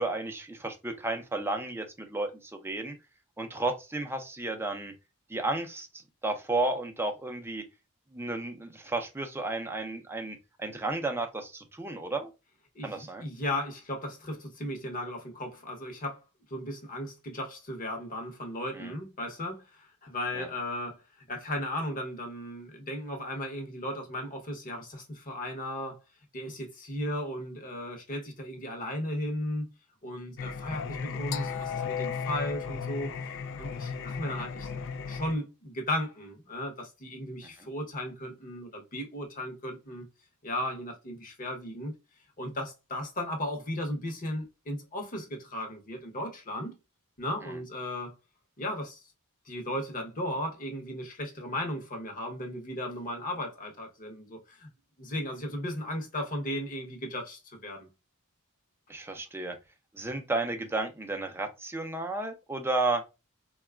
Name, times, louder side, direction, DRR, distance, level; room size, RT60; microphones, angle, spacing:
voice 1, 0.0-2.9 3.4-4.9 5.3-7.6 8.1-12.3 12.8-13.2 18.7-19.0 20.3-20.5 47.4-47.6 58.9-59.6 59.9-63.0, right 2 dB, 10° right, 0.5 m, -33 dB
voice 2, 12.7-16.2 16.5-21.0 21.3-26.0 26.3-29.7 30.0-33.1 33.6-34.7 35.0-40.1 40.4-41.9 42.4-46.8 47.2-48.1 48.6-49.1 49.5-54.7 55.0-57.9, left 1 dB, 40° left, 0.9 m, -35 dB
Singing, 30.4-35.3, left 6 dB, 60° left, 0.4 m, -35 dB
3.9 x 2.3 x 2.2 m
head